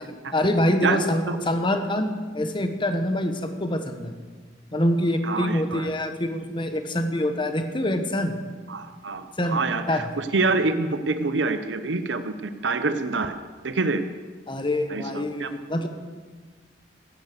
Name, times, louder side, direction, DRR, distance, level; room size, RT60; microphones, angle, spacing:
voice 1, 0.0-4.1 4.7-8.4 9.4-9.6 9.9-10.0 14.5-15.9, left 1 dB, 25° left, 7 dB, 1.2 m, -25 dB
voice 2, 5.2-5.9 8.7-13.3 13.6-14.0 14.9-15.5, right 3 dB, 85° right, 9 dB, 0.8 m, -26 dB
16.0 x 10.5 x 6.7 m, 1.4 s
head